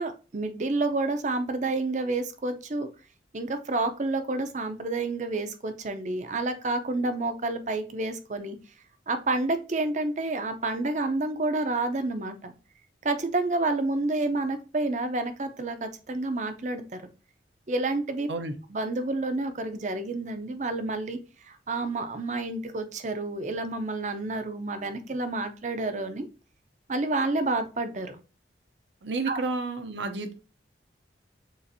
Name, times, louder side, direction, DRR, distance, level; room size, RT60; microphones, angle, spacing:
voice 1, 0.0-2.9 3.3-8.6 9.1-12.5 13.0-17.0 17.7-18.3 18.7-21.2 21.4-26.3 26.9-28.2 29.3-29.4, right 2 dB, 40° right, 8 dB, 0.6 m, -29 dB
voice 2, 29.0-30.3, right 3 dB, 75° right, 8 dB, 0.7 m, -31 dB
6.8 x 2.5 x 2.6 m, 0.34 s
head